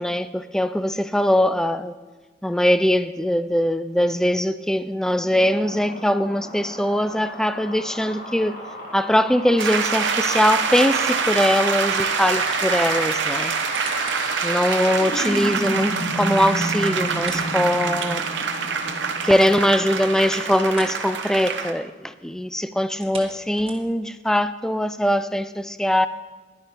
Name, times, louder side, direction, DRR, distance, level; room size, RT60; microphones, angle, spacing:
voice 1, 0.0-1.9 2.4-8.6 8.9-13.5 14.4-18.2 19.2-26.1, equal, 5° left, 0.3 m, -21 dB
sound 1, 5.0-21.4, equal, 50° left, 2.5 m, -33 dB
sound 2, 9.6-21.7, right 6 dB, 75° right, 1.0 m, -25 dB
sound 3, 13.4-14.4 14.9-15.0 17.1-18.5 18.9-19.0 19.4-19.5 20.6-21.1 21.3-21.6 22.9-24.1 24.7-24.8, right 4 dB, 30° right, 1.4 m, -40 dB
10.5 x 10.5 x 5.3 m
head